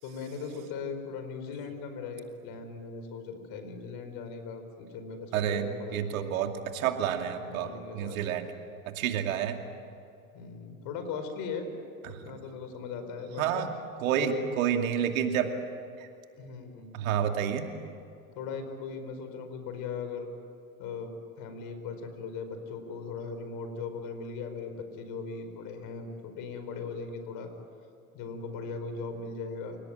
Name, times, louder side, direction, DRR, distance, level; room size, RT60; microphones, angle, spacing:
voice 1, 0.0-6.0 7.4-8.2 10.3-11.7 12.1-13.6 14.2-14.4 16.4-17.0 18.3-20.3 20.8-27.5 28.1-29.8, left 5 dB, 55° left, 8 dB, 4.9 m, -39 dB
voice 2, 5.3-8.5 8.9-9.6 12.2-12.3 13.4-13.7 14.0-15.5 16.0-16.1 16.9-17.7, right 9 dB, 75° right, 5 dB, 2.6 m, -29 dB
30.0 x 18.0 x 9.2 m, 2.5 s
hypercardioid pair, 90°, 41 cm